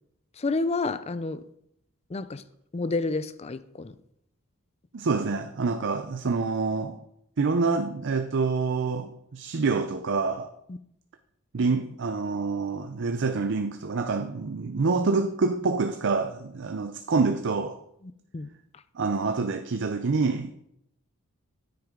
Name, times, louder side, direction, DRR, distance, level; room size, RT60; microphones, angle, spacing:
voice 1, 0.4-1.4 2.1-2.4 2.7-3.9 10.7-10.8 18.3-18.5, left 3 dB, 30° left, 0.4 m, -29 dB
voice 2, 4.9-7.0 7.4-10.5 11.5-17.8 18.9-20.5, right 4 dB, 55° right, 0.5 m, -27 dB
9.6 x 9.3 x 3.7 m
head